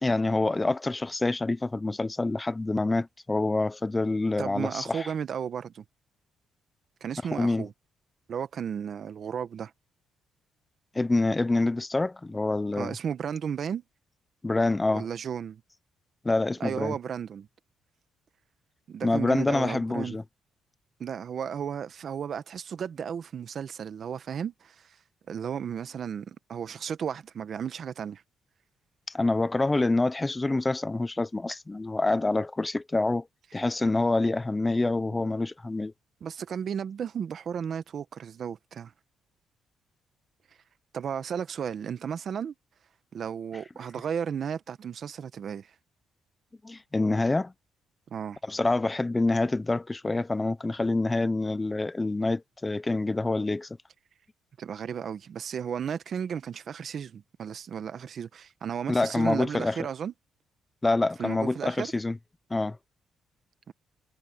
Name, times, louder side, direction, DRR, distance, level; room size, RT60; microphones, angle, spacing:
voice 1, 0.0-5.1 7.3-7.6 10.9-12.9 14.4-15.1 16.2-16.9 19.0-20.2 29.1-33.3 33.5-35.9 46.6-47.5 48.5-53.7 58.9-59.8 60.8-62.2 62.5-62.8, left 2 dB, 20° left, 0.8 m, -26 dB
voice 2, 4.4-5.8 7.0-7.7 8.3-9.7 12.8-13.8 14.9-15.6 16.6-17.5 18.9-20.2 21.0-24.9 25.3-28.2 35.2-35.3 36.2-38.9 40.9-42.5 43.1-45.7 48.1-48.4 54.6-60.1 61.2-61.9 63.7-63.8, right 7 dB, 55° right, 1.2 m, -34 dB
cardioid pair, 90°, 0 cm